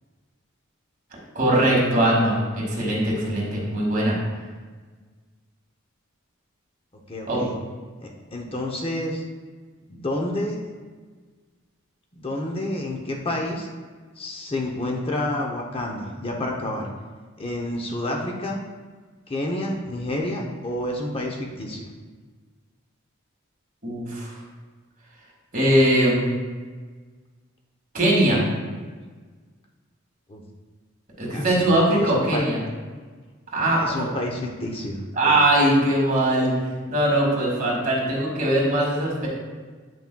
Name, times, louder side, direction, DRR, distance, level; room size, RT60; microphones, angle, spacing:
voice 1, 1.3-4.2 7.3-7.4 23.8-24.3 25.5-26.2 27.9-28.4 31.2-32.6 33.5-34.1 35.2-36.5 36.9-39.3, right 1 dB, 40° right, -3 dB, 1.9 m, -21 dB
voice 2, 7.1-7.5 8.0-9.2 9.9-10.6 12.1-13.7 14.2-16.9 17.4-18.6 19.3-21.9 30.3-30.4 31.3-31.6 32.0-32.4 33.8-35.3, left 1 dB, 25° left, 0 dB, 0.7 m, -29 dB
9.0 x 5.8 x 2.2 m, 1.4 s
head